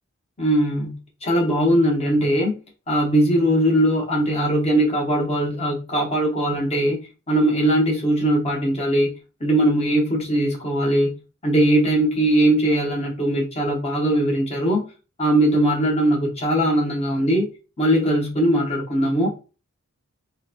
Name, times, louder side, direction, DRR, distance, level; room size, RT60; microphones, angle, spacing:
voice 1, 0.4-2.6 2.9-7.0 7.3-9.1 9.4-11.2 11.4-14.8 15.2-17.5 17.8-19.3, right 1 dB, 25° left, 0.8 m, -20 dB
2.9 x 2.1 x 2.4 m
head